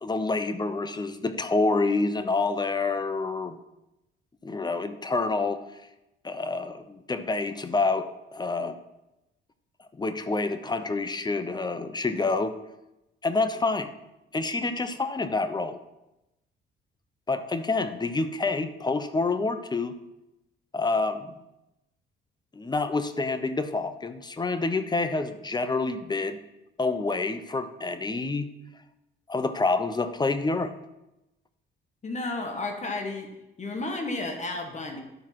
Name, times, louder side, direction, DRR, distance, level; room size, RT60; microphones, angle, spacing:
voice 1, 0.0-3.6 4.4-5.6 6.2-8.8 10.0-12.6 13.2-13.9 14.3-15.8 17.3-19.9 20.7-21.3 22.5-26.4 26.8-28.5 29.3-30.7, left 3 dB, 20° left, 10 dB, 0.8 m, -27 dB
voice 2, 32.0-33.3 33.6-35.0, left 2 dB, 35° left, 4 dB, 1.6 m, -32 dB
11.5 x 4.5 x 5.9 m, 0.93 s
cardioid pair, 90°, 20 cm